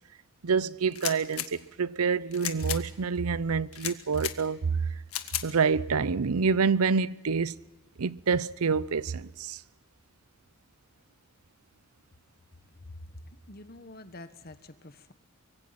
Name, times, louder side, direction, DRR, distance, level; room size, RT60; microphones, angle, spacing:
voice 1, 0.4-4.8 5.4-7.5 8.0-9.6, right 5 dB, 90° right, 0.7 m, -27 dB
sound 1, 0.9-1.5 2.3-2.8 3.7-4.3 5.1-5.5, left 12 dB, 80° left, 1.7 m, -34 dB
voice 2, 13.3-15.1, left 2 dB, 45° left, 1.4 m, -47 dB
24.5 x 23.5 x 5.9 m
head